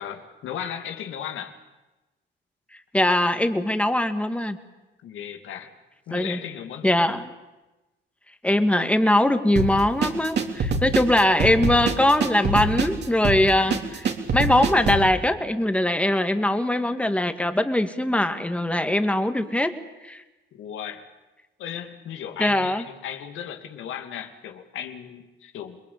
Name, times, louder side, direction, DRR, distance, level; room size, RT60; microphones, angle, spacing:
voice 1, 0.0-1.5 5.0-5.7 6.1-7.0 20.5-21.0 21.6-25.8, left 9 dB, 80° left, 6 dB, 2.6 m, -36 dB
voice 2, 2.9-4.6 6.1-6.4 6.8-7.2 8.4-19.7 20.0-20.2 22.4-22.8, left 1 dB, 5° left, 8 dB, 2.2 m, -21 dB
sound 1, 9.6-15.1, right 4 dB, 60° right, 3.5 m, -25 dB
27.5 x 21.5 x 8.7 m, 1.1 s
cardioid pair, 90°, 20 cm